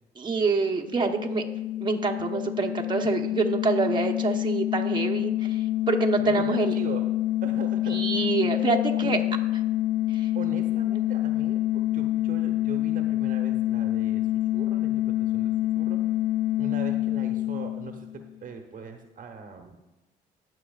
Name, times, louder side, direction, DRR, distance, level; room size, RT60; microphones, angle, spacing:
voice 1, 0.2-1.4 1.8-6.8 7.9-9.2 10.1-10.3, right 4 dB, 25° right, 2 dB, 1.0 m, -26 dB
sound 1, 0.9-18.4, left 15 dB, 80° left, 0.5 m, -27 dB
voice 2, 6.3-7.0 7.4-8.3 9.0-9.2 10.3-14.3 14.5-16.0 16.6-19.8, right 5 dB, 50° right, 5 dB, 1.0 m, -40 dB
18.5 x 6.2 x 2.4 m, 0.99 s
supercardioid pair, 75°, 17 cm